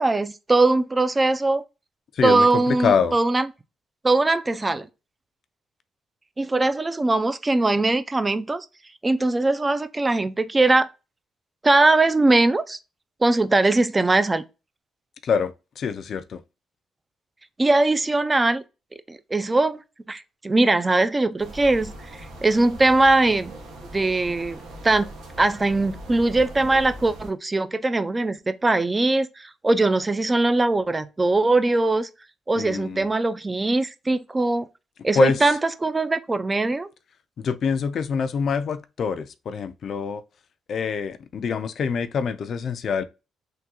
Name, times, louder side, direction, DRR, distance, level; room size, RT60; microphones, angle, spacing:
voice 1, 0.0-1.6 2.2-3.5 4.0-4.9 6.4-8.7 9.0-10.9 11.6-12.8 13.2-14.4 17.6-18.6 19.1-19.8 20.1-23.5 23.9-25.1 25.4-32.1 32.5-34.7 35.0-36.9, right 2 dB, 20° right, 0.3 m, -21 dB
voice 2, 2.2-3.1 15.2-16.4 32.6-33.1 35.1-35.4 37.4-40.2 40.7-43.0, left 6 dB, 60° left, 0.3 m, -25 dB
sound 1, 21.4-27.3, right 1 dB, 85° right, 0.9 m, -40 dB
3.6 x 2.2 x 2.8 m
cardioid pair, 90°, 0 cm